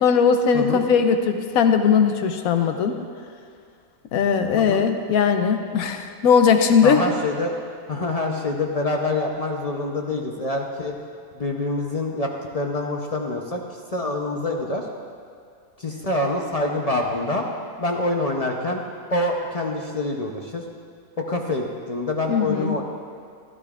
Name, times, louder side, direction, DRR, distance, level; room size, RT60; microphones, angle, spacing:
voice 1, 0.0-2.9 4.1-7.0 22.3-22.7, left 6 dB, 90° left, 7 dB, 1.1 m, -19 dB
voice 2, 6.8-7.6 7.9-11.0 11.3-13.6 13.9-14.9 15.8-17.4 17.8-18.8 19.1-20.6 21.2-22.8, left 2 dB, 40° left, 0 dB, 0.5 m, -26 dB
15.0 x 12.0 x 2.4 m, 2.2 s
omnidirectional pair, 1.5 m